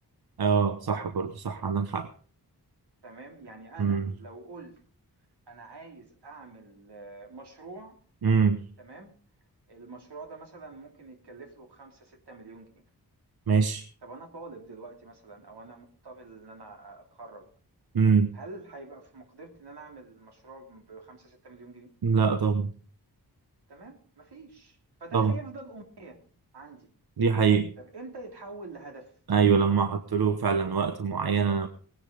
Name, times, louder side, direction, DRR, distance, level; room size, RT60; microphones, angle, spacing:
voice 1, 0.4-2.1 3.8-4.1 8.2-8.6 13.5-13.8 17.9-18.3 22.0-22.7 25.1-25.3 27.2-27.7 29.3-31.7, right 6 dB, 70° right, 9 dB, 1.0 m, -24 dB
voice 2, 3.0-4.8 5.5-8.0 8.8-9.1 9.7-12.8 14.0-17.5 18.3-21.9 23.7-26.2 26.5-26.9 27.8-29.1, right 3 dB, 85° right, 2 dB, 3.1 m, -46 dB
18.5 x 10.0 x 5.0 m, 0.43 s
cardioid pair, 55°, 39 cm